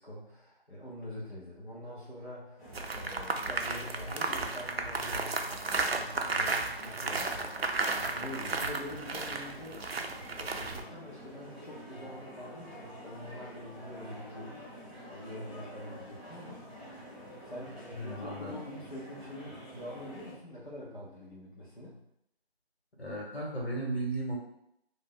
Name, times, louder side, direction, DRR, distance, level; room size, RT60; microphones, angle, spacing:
voice 1, 0.0-9.8 10.1-16.6 16.9-17.0 17.4-22.0, left 1 dB, 50° left, -8 dB, 0.9 m, -45 dB
sound 1, 2.6-20.3, equal, ahead, 0.6 m, -48 dB
sound 2, 2.7-10.8, right 3 dB, 70° right, 0.5 m, -33 dB
voice 2, 17.9-18.5 23.0-24.4, right 2 dB, 80° left, -3 dB, 1.4 m, -35 dB
2.6 x 2.1 x 3.8 m, 0.78 s
figure-of-eight pair, 180°, 32 cm